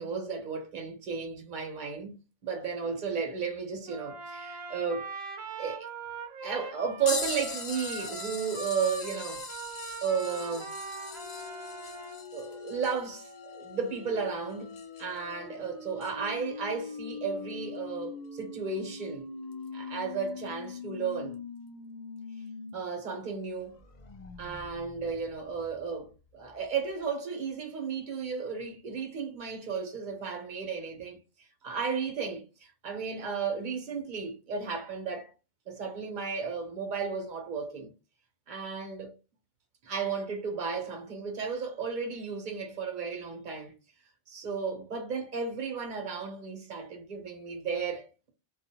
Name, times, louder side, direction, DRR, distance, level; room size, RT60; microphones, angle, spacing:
voice 1, 0.0-2.2 2.4-5.1 5.6-5.9 6.4-9.4 10.0-10.7 12.3-19.3 19.7-21.4 22.7-23.8 24.4-31.2 31.6-35.3 35.7-37.9 38.5-39.1 39.8-43.7 44.3-48.3, right 5 dB, 50° right, 0.9 m, -34 dB
Trumpet, 3.9-12.2, right 5 dB, 80° right, 0.9 m, -41 dB
sound 1, 7.1-15.3 16.0-16.1 18.4-18.5 19.5-19.7 20.7-20.8, left 5 dB, 85° left, 1.0 m, -41 dB
sound 2, 10.3-22.7 23.1-23.2 23.5-26.2, left 5 dB, 55° left, 0.5 m, -44 dB
2.3 x 2.3 x 2.8 m
omnidirectional pair, 1.1 m